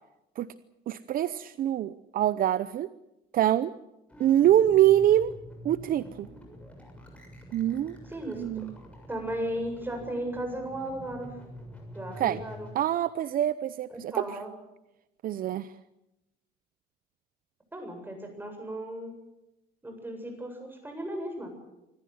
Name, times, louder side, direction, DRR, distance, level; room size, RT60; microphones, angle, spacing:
voice 1, 0.9-2.9 3.3-3.7 4.2-5.3 5.6-6.3 7.5-8.0 8.3-8.8 12.2-12.4 12.7-14.2 15.2-15.7, right 12 dB, 60° right, 15 dB, 0.7 m, -24 dB
sound 1, 4.1-12.7, equal, 5° left, 6.9 m, -47 dB
voice 2, 8.1-8.4 9.1-11.3 11.9-12.7 13.9-14.5 17.7-19.1 19.8-21.5, right 1 dB, 10° right, 4 dB, 7.8 m, -35 dB
26.0 x 14.5 x 9.4 m, 0.91 s
cardioid pair, 110°, 17 cm